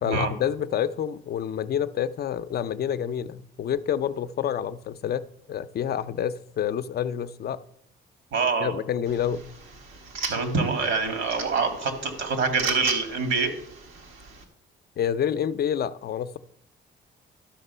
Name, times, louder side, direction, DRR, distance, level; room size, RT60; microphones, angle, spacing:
voice 1, 0.0-5.2 5.5-7.6 8.6-9.4 15.0-16.4, left 9 dB, 55° left, 14 dB, 0.5 m, -28 dB
voice 2, 8.3-8.7 10.3-13.5, right 4 dB, 70° right, 6 dB, 1.9 m, -25 dB
sound 1, 9.1-14.4, right 4 dB, 85° right, 1.6 m, -37 dB
12.0 x 5.9 x 5.4 m, 0.75 s
cardioid pair, 90°, 20 cm